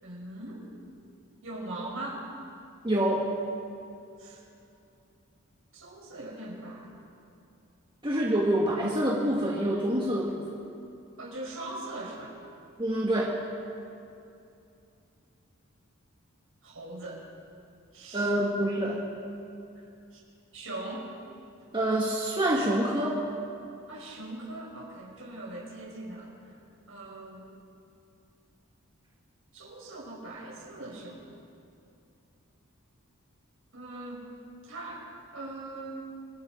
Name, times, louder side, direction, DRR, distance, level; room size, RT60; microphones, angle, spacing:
voice 1, 0.0-0.7 1.4-2.2 4.2-4.4 5.7-7.0 11.2-12.3 16.6-17.2 17.9-18.3 20.1-20.2 20.5-21.0 23.9-26.5 26.9-27.5 29.5-31.2 33.7-34.2 34.6-35.0 35.3-36.0, right 2 dB, 65° right, -2 dB, 5.8 m, -40 dB
voice 2, 2.8-3.3 8.0-10.4 12.8-13.4 18.1-19.0 21.7-23.2, right 1 dB, 20° right, -3 dB, 2.0 m, -26 dB
29.0 x 21.5 x 5.3 m, 2.6 s
head